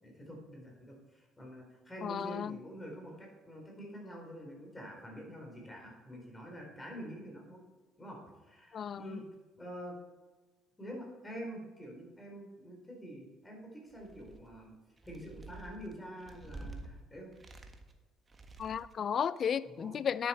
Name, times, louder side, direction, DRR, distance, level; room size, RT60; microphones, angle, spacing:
voice 1, 0.0-7.6 8.0-9.3 9.6-10.0 10.8-14.7 15.0-17.3 19.6-20.0, equal, 20° left, 0 dB, 4.1 m, -47 dB
voice 2, 2.0-2.6 8.7-9.2 18.6-20.3, left 8 dB, 50° left, 18 dB, 0.4 m, -34 dB
sound 1, 13.9-14.6 15.0-16.9 17.3-18.0 18.3-19.0, right 3 dB, 30° right, 1.5 m, -49 dB
9.8 x 9.2 x 4.4 m, 1.2 s
hypercardioid pair, 60°, 0 cm